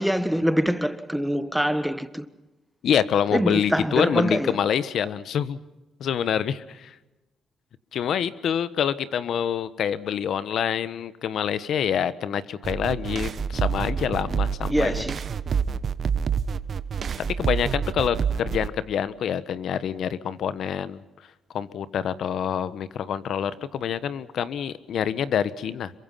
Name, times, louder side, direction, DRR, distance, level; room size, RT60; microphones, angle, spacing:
voice 1, 0.0-2.2 3.3-4.5 14.7-15.2, equal, ahead, 1.5 m, -24 dB
voice 2, 2.8-5.6 6.0-6.9 7.9-15.0 17.4-21.0 21.5-25.9, left 8 dB, 65° left, 1.3 m, -26 dB
sound 1, 12.6-18.7, right 7 dB, 50° right, 1.1 m, -27 dB
27.0 x 23.0 x 5.8 m
cardioid pair, 90°, 0 cm